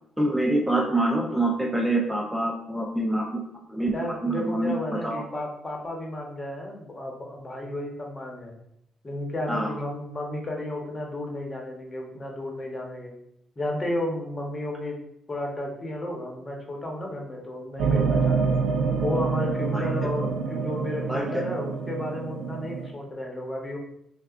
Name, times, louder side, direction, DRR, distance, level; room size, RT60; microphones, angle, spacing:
voice 1, 0.2-3.4 3.7-4.0 4.2-4.7 5.0-5.2 9.5-9.7 19.7-19.8 21.1-21.4, right 1 dB, 5° right, 0 dB, 0.5 m, -25 dB
voice 2, 3.9-8.5 9.0-13.2 13.6-15.0 15.3-18.6 19.0-23.8, left 1 dB, 25° left, 0 dB, 1.0 m, -33 dB
sound 1, 17.8-22.9, right 5 dB, 80° right, 0.5 m, -26 dB
5.8 x 2.3 x 2.5 m, 0.76 s
cardioid pair, 90°, 0 cm